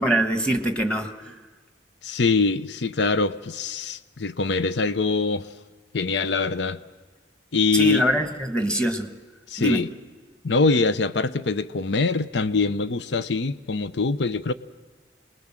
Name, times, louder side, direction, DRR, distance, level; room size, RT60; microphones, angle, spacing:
voice 1, 0.0-1.4 7.7-9.1 9.6-9.8, right 1 dB, 5° left, 1.4 m, -23 dB
voice 2, 2.0-5.5 5.9-6.8 7.5-8.1 9.5-9.9 10.4-14.5, left 4 dB, 80° left, 0.7 m, -23 dB
27.5 x 20.5 x 7.5 m
head